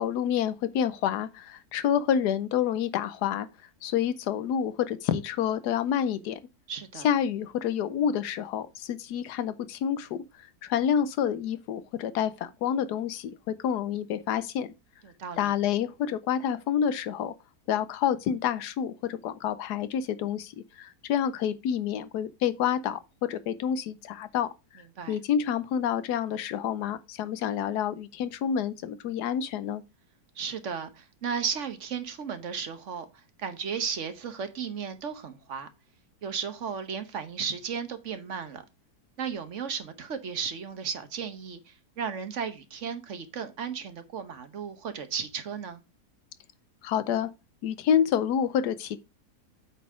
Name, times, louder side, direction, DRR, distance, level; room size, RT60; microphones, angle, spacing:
voice 1, 0.0-3.5 3.8-6.4 7.0-10.2 10.6-14.7 15.4-17.3 17.7-24.5 25.1-29.8 46.8-47.3 47.6-49.0, left 9 dB, 90° left, 1.2 m, -28 dB
voice 2, 6.7-7.1 15.0-15.5 25.0-25.2 30.4-33.1 33.4-35.7 36.2-38.6 39.2-45.8, right 6 dB, 50° right, 1.2 m, -35 dB
8.3 x 4.0 x 4.9 m
omnidirectional pair, 1.7 m